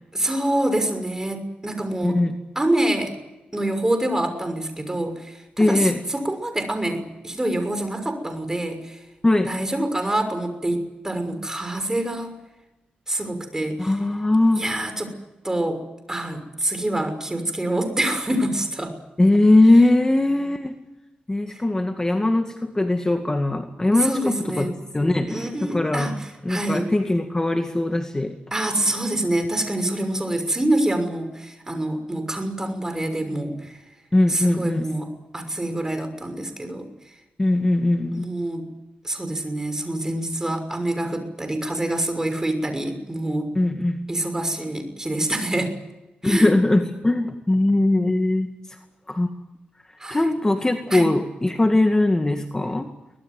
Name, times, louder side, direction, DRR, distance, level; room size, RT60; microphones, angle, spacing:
voice 1, 0.1-2.2 2.5-3.1 3.5-9.0 9.4-12.4 13.1-13.9 14.6-15.1 15.4-15.8 16.1-18.9 24.0-24.7 25.3-26.9 28.5-33.8 34.3-36.9 38.1-38.7 39.0-43.5 44.1-45.7 46.2-46.5 50.0-50.2 50.9-51.1, right 1 dB, 15° right, 8 dB, 6.2 m, -26 dB
voice 2, 2.0-2.4 5.6-6.0 9.2-9.5 13.8-14.6 19.2-20.8 21.3-26.2 26.4-28.3 34.1-34.9 37.4-38.3 43.6-44.1 46.2-48.5 49.1-49.3 50.1-52.9, left 2 dB, 20° left, 5 dB, 2.2 m, -20 dB
24.5 x 19.5 x 9.5 m, 1.0 s
cardioid pair, 75°, 3 cm